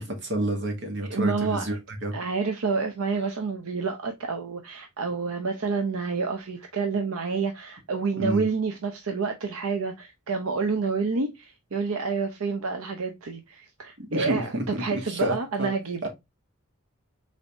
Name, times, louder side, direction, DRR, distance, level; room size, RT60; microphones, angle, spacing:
voice 1, 0.0-1.8 2.0-2.1 8.2-8.4 14.0-15.7 16.0-16.1, right 1 dB, 55° right, 1.8 m, -29 dB
voice 2, 1.0-1.6 2.1-16.1, right 4 dB, 80° right, 0.7 m, -29 dB
5.2 x 4.0 x 2.5 m
head